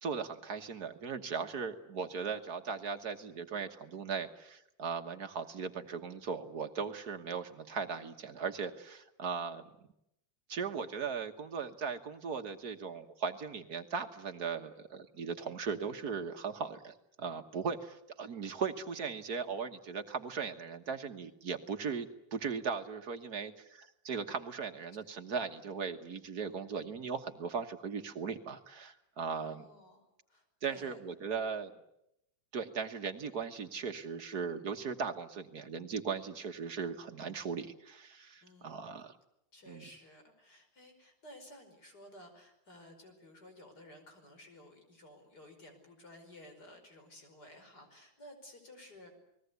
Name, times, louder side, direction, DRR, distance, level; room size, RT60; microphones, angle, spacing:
voice 1, 0.0-9.7 10.5-29.7 30.6-31.7 32.5-39.2 39.7-39.8, right 5 dB, 60° right, 7 dB, 1.8 m, -38 dB
voice 2, 19.2-19.6 29.3-31.0 38.4-38.9 39.5-49.1, left 1 dB, 60° left, 5 dB, 5.8 m, -55 dB
29.5 x 20.0 x 8.2 m, 0.81 s
omnidirectional pair, 2.0 m